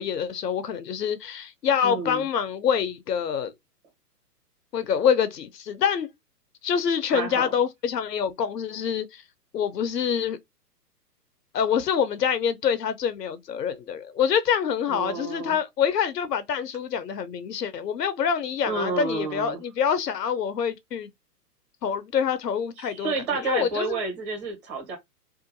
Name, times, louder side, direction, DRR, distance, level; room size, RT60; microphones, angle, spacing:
voice 1, 0.0-3.5 4.7-6.1 6.6-9.2 9.5-10.4 11.5-21.1 21.8-23.1 23.4-24.0, left 7 dB, 80° left, 0.7 m, -26 dB
voice 2, 1.8-2.2 7.1-7.5 14.9-15.6 18.6-19.6 22.8-25.0, right 3 dB, 25° right, 1.3 m, -30 dB
2.7 x 2.4 x 2.6 m
hypercardioid pair, 125°, 48 cm